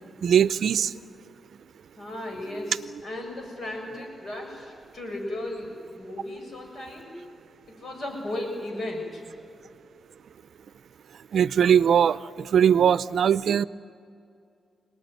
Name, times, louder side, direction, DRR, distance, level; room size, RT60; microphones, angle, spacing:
voice 1, 0.2-0.9 11.3-12.2 12.5-13.6, right 8 dB, 80° right, 17 dB, 0.5 m, -20 dB
voice 2, 2.0-7.2 7.7-9.2, left 1 dB, 60° left, 1 dB, 7.1 m, -35 dB
27.5 x 19.5 x 9.3 m, 2.5 s
cardioid pair, 90°, 0 cm